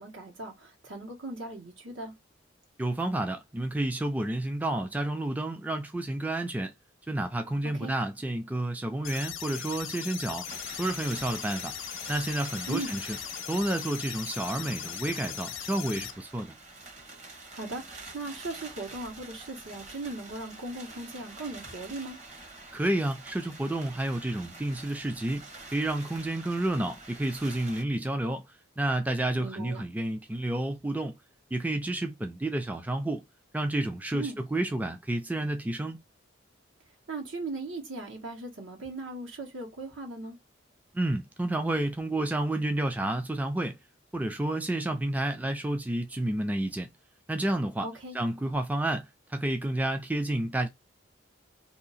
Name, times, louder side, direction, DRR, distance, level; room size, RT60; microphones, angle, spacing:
voice 1, 0.0-2.1 7.6-7.9 12.7-12.9 17.5-22.2 29.4-29.8 34.1-34.4 37.1-40.4 47.8-48.2, right 2 dB, 75° right, 1.4 m, -38 dB
voice 2, 2.8-6.7 7.1-10.5 10.8-11.7 12.1-13.2 13.5-16.5 22.7-25.5 25.7-28.4 28.8-31.1 31.5-33.2 33.5-36.0 40.9-43.8 44.1-46.9 47.3-47.9 48.1-50.7, right 1 dB, 10° right, 0.3 m, -30 dB
sound 1, 9.0-16.1, left 9 dB, 90° left, 0.7 m, -39 dB
sound 2, 10.4-27.8, right 3 dB, 35° right, 1.0 m, -47 dB
2.8 x 2.7 x 4.1 m
head